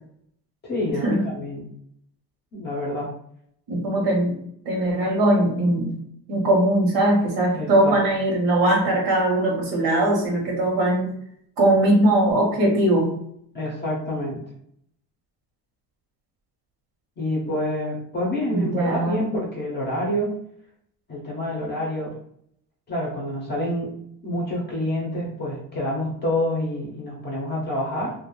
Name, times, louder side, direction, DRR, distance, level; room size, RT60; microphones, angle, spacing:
voice 1, 0.6-1.7 2.5-3.1 7.5-8.0 13.5-14.4 17.2-20.4 21.1-22.1 22.9-23.9 24.2-28.1, left 1 dB, 25° left, -3 dB, 0.6 m, -27 dB
voice 2, 3.7-4.4 4.7-6.0 6.3-11.1 11.6-13.1 18.5-19.2, right 1 dB, 85° right, -2 dB, 0.8 m, -20 dB
2.3 x 2.1 x 3.0 m, 0.68 s
cardioid pair, 165°, 38 cm